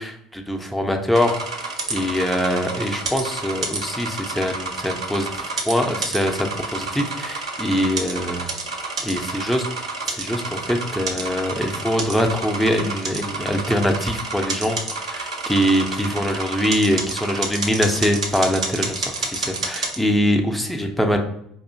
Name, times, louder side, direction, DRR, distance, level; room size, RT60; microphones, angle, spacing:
voice 1, 0.0-8.6 9.0-9.7 10.1-21.2, equal, ahead, 3 dB, 0.5 m, -23 dB
sound 1, 1.1-20.0, right 3 dB, 85° right, 0.5 m, -29 dB
4.3 x 2.7 x 2.6 m, 0.72 s
figure-of-eight pair, 65°, 3 cm